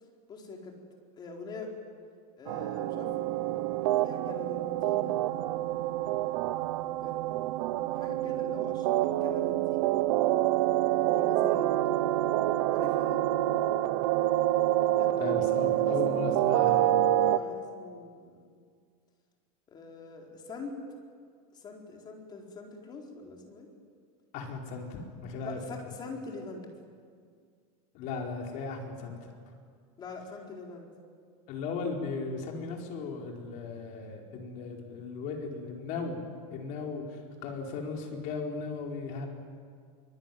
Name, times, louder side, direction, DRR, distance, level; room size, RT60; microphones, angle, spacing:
voice 1, 0.3-0.8 1.1-1.8 2.4-3.3 4.0-5.8 7.0-7.3 7.9-9.9 10.9-12.2 12.7-13.2 14.9-16.5 17.2-18.6 19.7-20.8 21.5-23.7 25.4-26.7 30.0-30.9, left 3 dB, 20° left, 1 dB, 4.3 m, -44 dB
sound 1, 2.5-17.4, right 14 dB, 55° right, 1.1 m, -27 dB
voice 2, 15.2-17.0 24.3-25.6 27.9-29.3 31.5-36.2 36.5-39.3, left 4 dB, 40° left, 1 dB, 4.7 m, -37 dB
23.5 x 23.5 x 9.4 m, 2.1 s
supercardioid pair, 160°, 19 cm